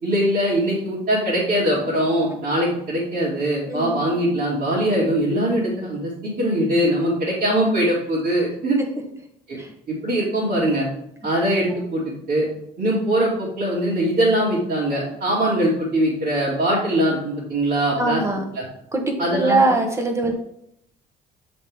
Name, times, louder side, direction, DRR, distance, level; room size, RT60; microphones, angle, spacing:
voice 1, 0.0-8.8 9.5-9.6 9.9-10.9 11.2-12.5 12.8-18.2 18.6-18.7 19.2-19.6, right 1 dB, 55° right, -10 dB, 2.6 m, -22 dB
voice 2, 18.0-18.4 18.9-20.3, right 2 dB, 15° right, 3 dB, 1.2 m, -21 dB
7.2 x 4.2 x 3.7 m, 0.75 s
cardioid pair, 110°, 17 cm